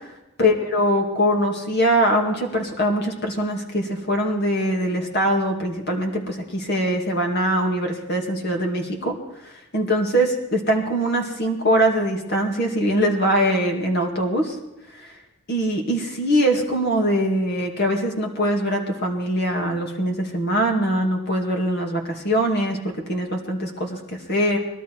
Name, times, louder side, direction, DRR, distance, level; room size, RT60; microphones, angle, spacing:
voice 1, 0.4-9.1 9.4-14.6 14.9-15.1 15.5-24.6, equal, 55° left, 2 dB, 2.4 m, -22 dB
20.0 x 12.5 x 4.7 m, 0.97 s
head